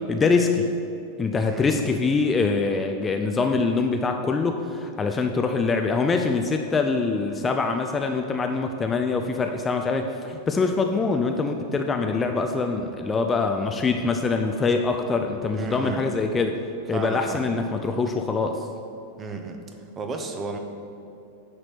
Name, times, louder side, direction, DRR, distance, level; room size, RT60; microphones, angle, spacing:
voice 1, 0.1-0.7 1.2-16.6 16.9-18.7, left 4 dB, 20° left, 4 dB, 0.5 m, -24 dB
voice 2, 1.4-1.8 15.5-16.1 16.9-17.4 19.2-19.6 19.9-20.6, right 3 dB, 25° right, 4 dB, 1.0 m, -33 dB
10.0 x 4.4 x 6.9 m, 2.6 s
figure-of-eight pair, 90°, 0 cm